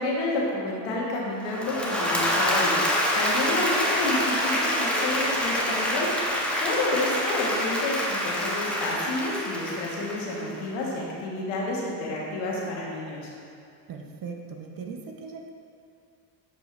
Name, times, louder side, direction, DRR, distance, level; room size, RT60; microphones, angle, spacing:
voice 1, 0.0-2.9 3.1-6.1 6.6-13.3, left 2 dB, 70° left, -3 dB, 1.6 m, -30 dB
Applause / Crowd, 1.4-10.6, equal, ahead, 1.3 m, -26 dB
voice 2, 13.9-15.5, right 5 dB, 45° right, 3 dB, 0.9 m, -39 dB
7.6 x 5.1 x 3.2 m, 2.4 s
hypercardioid pair, 65°, 48 cm